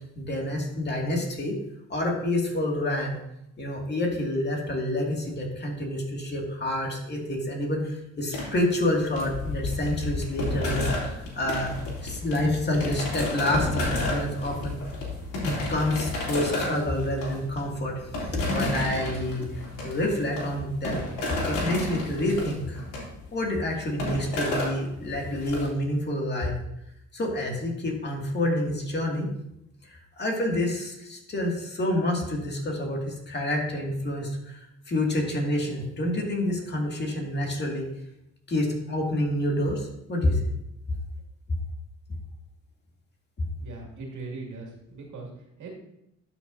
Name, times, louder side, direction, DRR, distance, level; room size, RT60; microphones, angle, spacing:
voice 1, 0.2-1.6 1.9-3.2 3.6-14.8 15.4-18.1 18.3-21.0 21.5-22.8 23.3-26.5 27.1-29.3 29.8-37.9 38.5-40.4, left 1 dB, 35° left, 0 dB, 2.1 m, -28 dB
sound 1, 8.3-25.7, left 2 dB, 85° left, 3.0 m, -31 dB
voice 2, 43.6-45.7, right 3 dB, 75° right, -1 dB, 2.3 m, -40 dB
12.0 x 5.9 x 2.7 m, 0.81 s
cardioid pair, 90°, 30 cm